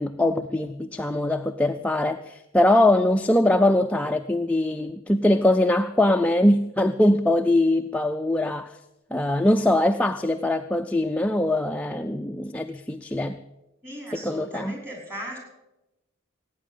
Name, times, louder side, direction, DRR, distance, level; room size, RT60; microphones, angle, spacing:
voice 1, 0.0-8.8 9.1-13.4 14.1-14.7, left 1 dB, 5° left, 5 dB, 0.4 m, -22 dB
voice 2, 13.8-15.4, right 1 dB, 15° right, 0 dB, 4.9 m, -37 dB
17.0 x 9.1 x 7.3 m, 0.94 s
head